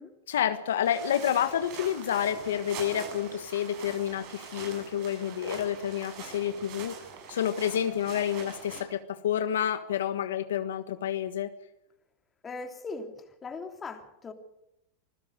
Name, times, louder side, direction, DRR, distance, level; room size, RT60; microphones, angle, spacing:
voice 1, 0.3-7.0 7.3-11.5, left 9 dB, 90° left, 10 dB, 1.4 m, -29 dB
sound 1, 0.8-8.8, right 6 dB, 55° right, 7.0 m, -43 dB
voice 2, 12.4-14.3, left 3 dB, 20° left, 6 dB, 3.1 m, -39 dB
26.0 x 15.5 x 6.6 m, 0.82 s
supercardioid pair, 120°, 0 cm